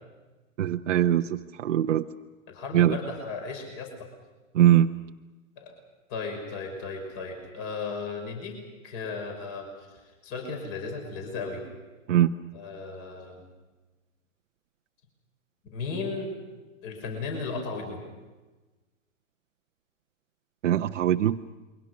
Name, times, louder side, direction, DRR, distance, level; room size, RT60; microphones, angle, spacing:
voice 1, 0.6-2.0 2.7-3.0 4.5-4.9 12.1-12.3 20.6-21.4, right 11 dB, 65° right, 5 dB, 0.9 m, -22 dB
voice 2, 2.5-4.1 5.6-5.8 6.1-8.6 8.8-9.7 9.9-11.7 12.5-13.4 15.7-16.3 16.8-18.0, left 4 dB, 35° left, 3 dB, 5.8 m, -35 dB
28.5 x 23.5 x 6.0 m, 1.2 s
hypercardioid pair, 125°, 40 cm